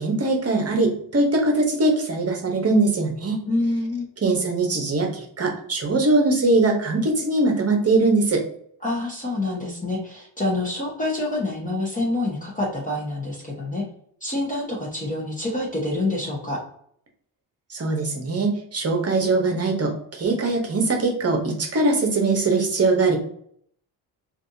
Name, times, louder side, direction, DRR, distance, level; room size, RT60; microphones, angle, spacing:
voice 1, 0.0-3.4 4.2-8.4 17.7-23.2, right 2 dB, 35° right, 2 dB, 1.0 m, -21 dB
voice 2, 3.4-4.1 8.8-13.8 14.2-16.6, left 2 dB, 15° left, -3 dB, 1.1 m, -27 dB
3.3 x 2.6 x 2.7 m, 0.64 s
cardioid pair, 75°, 45 cm